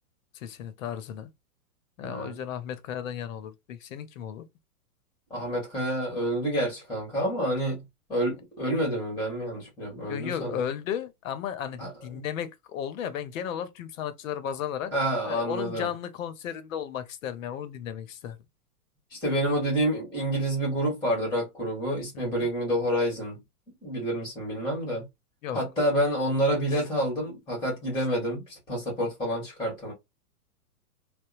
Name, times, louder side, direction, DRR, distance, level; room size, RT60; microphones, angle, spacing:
voice 1, 0.3-1.3 2.0-4.5 10.1-14.9 15.3-18.4 22.1-22.5 25.4-25.6, left 9 dB, 60° left, 0.7 m, -34 dB
voice 2, 2.0-2.4 5.3-7.8 8.1-10.6 11.8-11.9 14.9-15.9 19.1-23.4 23.8-25.0 25.5-29.9, equal, 10° left, 1.3 m, -28 dB
2.7 x 2.0 x 2.3 m
hypercardioid pair, 130°, 46 cm